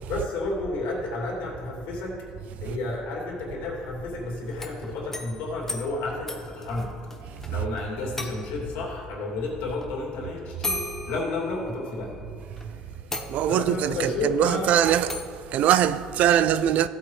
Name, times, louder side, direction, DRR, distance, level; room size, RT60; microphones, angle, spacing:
voice 1, 0.1-2.2 2.6-7.1 7.5-12.2 12.6-12.9 13.5-14.7, left 2 dB, 80° left, 2.7 m, -31 dB
sound 1, 4.5-7.5 7.8-7.9 8.2-8.7 9.8-9.9 10.6-12.0 12.6-12.7 13.1-13.8 15.1-15.4, left 2 dB, 15° left, 0.9 m, -36 dB
voice 2, 13.2-15.2 15.5-16.9, right 10 dB, 60° right, 0.4 m, -22 dB
15.0 x 8.6 x 3.2 m
cardioid pair, 120°, 3 cm